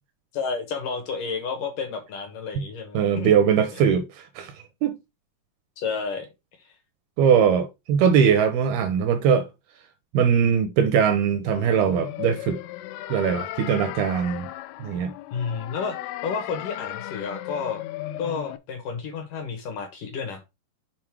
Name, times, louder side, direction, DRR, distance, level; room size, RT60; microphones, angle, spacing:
voice 1, 0.3-3.3 3.7-3.8 5.8-6.3 6.6-6.7 15.3-17.8 18.2-20.4, left 5 dB, 70° left, 2.2 m, -31 dB
voice 2, 2.9-4.5 4.8-5.0 7.2-9.5 10.1-12.6 13.1-14.5 14.8-15.1, right 7 dB, 80° right, 2.3 m, -21 dB
sound 1, 11.5-18.6, left 14 dB, 85° left, 2.3 m, -36 dB
7.4 x 4.1 x 4.5 m
omnidirectional pair, 4.9 m